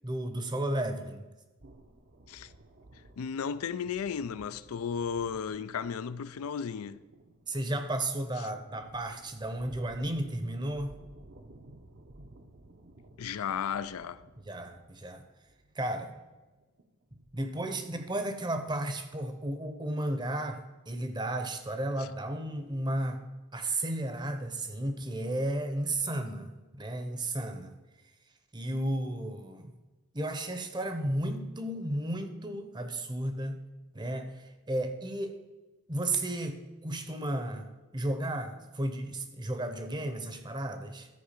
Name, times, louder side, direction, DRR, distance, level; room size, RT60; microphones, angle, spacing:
voice 1, 0.0-1.2 7.5-10.9 14.4-15.2 15.7-16.1 17.3-23.2 23.5-27.7 28.5-29.7 30.1-33.6 33.9-35.4 35.9-41.1, right 1 dB, 20° right, 0.8 m, -33 dB
sound 1, 1.6-17.8, right 1 dB, 50° right, 0.8 m, -56 dB
voice 2, 3.2-7.0 13.2-14.2 22.0-22.1, left 7 dB, 75° left, 0.4 m, -34 dB
13.0 x 4.7 x 6.6 m
head